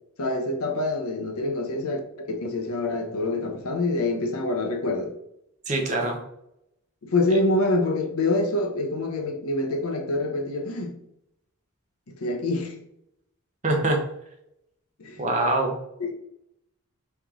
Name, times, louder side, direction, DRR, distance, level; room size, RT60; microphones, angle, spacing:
voice 1, 0.2-5.1 7.0-10.9 12.1-12.7 15.0-15.2 16.0-16.1, left 2 dB, 80° left, 0.7 m, -26 dB
voice 2, 5.7-6.2 13.6-14.0 15.2-15.8, right 2 dB, 35° right, 0.8 m, -23 dB
3.4 x 3.0 x 3.6 m
head